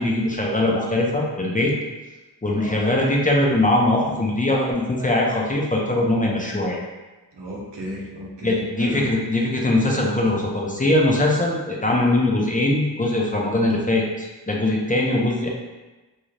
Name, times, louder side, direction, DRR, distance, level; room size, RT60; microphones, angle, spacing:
voice 1, 0.0-1.7 2.4-6.8 8.4-15.5, left 1 dB, 20° left, -2 dB, 0.6 m, -21 dB
voice 2, 7.3-9.0, equal, 85° right, -4 dB, 0.8 m, -34 dB
2.6 x 2.3 x 3.2 m, 1.2 s
cardioid pair, 45°, 41 cm